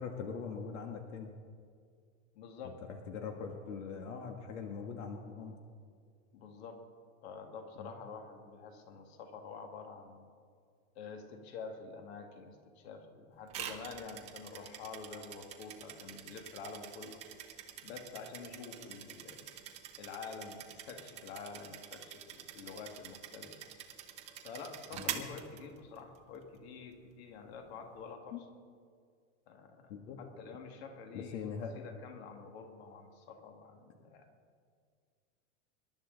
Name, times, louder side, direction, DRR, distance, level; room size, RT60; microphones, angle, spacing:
voice 1, 0.0-1.3 2.9-5.6 7.8-7.9 24.9-25.3 28.3-28.4 29.9-30.2 31.1-31.8, left 6 dB, 75° left, 4 dB, 1.7 m, -42 dB
voice 2, 2.4-2.8 6.3-6.8 7.2-10.3 11.0-17.3 17.8-19.5 20.0-23.7 24.4-28.4 29.5-29.9 30.2-31.5 31.7-34.3, left 5 dB, 55° left, 4 dB, 2.1 m, -48 dB
sound 1, 13.5-26.2, right 10 dB, 15° right, 0.7 m, -46 dB
26.0 x 11.5 x 3.9 m, 2.1 s
supercardioid pair, 180°, 37 cm